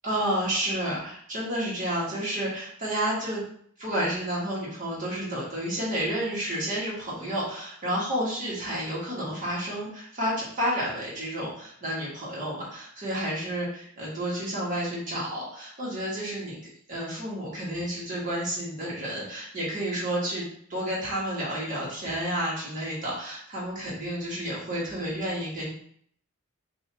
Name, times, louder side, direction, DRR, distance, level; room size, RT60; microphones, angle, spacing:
voice 1, 0.0-3.4 3.8-16.6 16.9-20.4 20.7-25.7, right 1 dB, 35° right, -6 dB, 1.8 m, -30 dB
5.4 x 2.8 x 2.9 m, 0.63 s
head